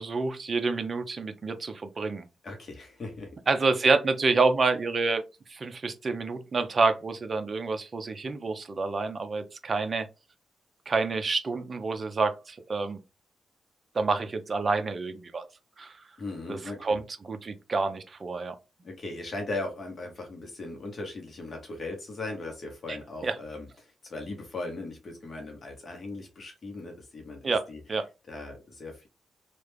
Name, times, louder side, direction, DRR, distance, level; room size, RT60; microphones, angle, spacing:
voice 1, 0.0-2.2 3.5-5.2 5.5-10.1 10.9-13.0 13.9-15.5 15.8-15.9 16.5-18.6 22.9-23.0 23.2-23.3 27.4-28.0, right 3 dB, 35° right, 0.5 m, -28 dB
voice 2, 2.4-3.3 16.2-17.0 18.8-29.1, left 2 dB, 40° left, 0.9 m, -38 dB
3.2 x 2.3 x 3.3 m
wide cardioid pair, 130°, 0 cm